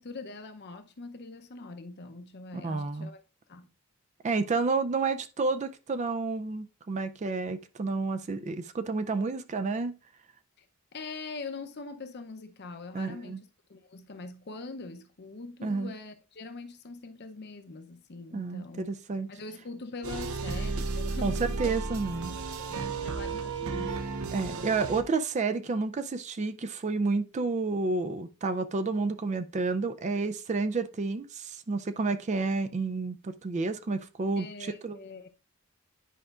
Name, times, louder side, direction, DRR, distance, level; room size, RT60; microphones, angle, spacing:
voice 1, 0.0-3.2 3.5-3.7 10.6-10.7 10.9-18.9 19.3-21.7 22.1-24.1 34.4-35.3, left 3 dB, 50° left, 0.7 m, -43 dB
voice 2, 2.6-3.1 4.2-10.0 12.9-13.4 15.6-15.9 18.3-19.3 21.2-22.4 24.3-35.0, right 3 dB, 35° right, 0.4 m, -30 dB
sound 1, 20.0-25.0, right 4 dB, 80° right, 0.7 m, -33 dB
10.0 x 4.9 x 2.4 m
head